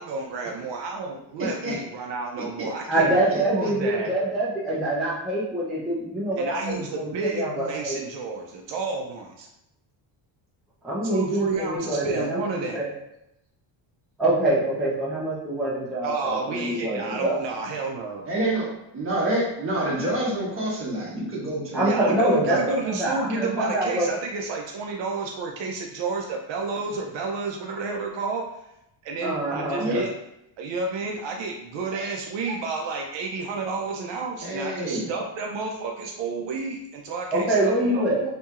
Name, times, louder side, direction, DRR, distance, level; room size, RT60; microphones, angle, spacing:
voice 1, 0.0-3.2 3.5-4.1 6.4-9.5 11.0-12.8 16.0-18.3 21.8-28.4 29.0-30.1 30.6-38.3, right 4 dB, 60° right, 1 dB, 0.5 m, -30 dB
voice 2, 1.4-1.8 2.4-2.7 3.3-3.7 18.2-18.7 18.9-22.0 22.3-22.6 29.8-30.1 34.4-35.1, right 1 dB, 25° right, -5 dB, 1.2 m, -28 dB
voice 3, 2.9-8.0 10.8-12.4 12.7-12.9 14.2-17.4 21.7-24.1 29.2-29.9 37.3-38.3, right 1 dB, ahead, -8 dB, 0.5 m, -25 dB
4.2 x 2.8 x 2.4 m, 0.84 s
cardioid pair, 160°, 50 cm